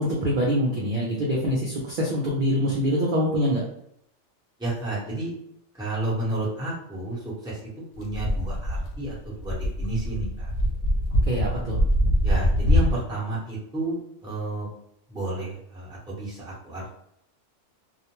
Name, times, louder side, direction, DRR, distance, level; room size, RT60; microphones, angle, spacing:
voice 1, 0.0-3.6 11.3-11.8, equal, 55° right, -3 dB, 0.6 m, -24 dB
voice 2, 4.6-5.3 5.8-7.6 8.0-10.5 12.2-14.7 15.1-16.8, right 2 dB, 5° right, -8 dB, 0.9 m, -31 dB
sound 1, 8.0-13.0, equal, 85° left, 0.9 m, -24 dB
2.4 x 2.1 x 2.9 m, 0.72 s
omnidirectional pair, 1.2 m